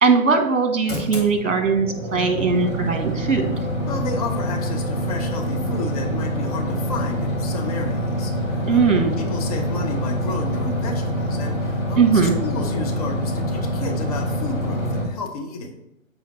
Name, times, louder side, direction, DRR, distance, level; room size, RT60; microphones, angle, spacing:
voice 1, 0.0-3.5 8.6-9.1 12.0-12.4, right 4 dB, 60° right, 6 dB, 1.3 m, -19 dB
sound 1, 0.9-15.0, equal, 10° left, 2.0 m, -26 dB
voice 2, 3.9-8.8 9.2-12.0 12.4-15.8, left 3 dB, 25° left, 2 dB, 0.9 m, -32 dB
7.8 x 4.3 x 4.1 m, 0.84 s
figure-of-eight pair, 130°, 41 cm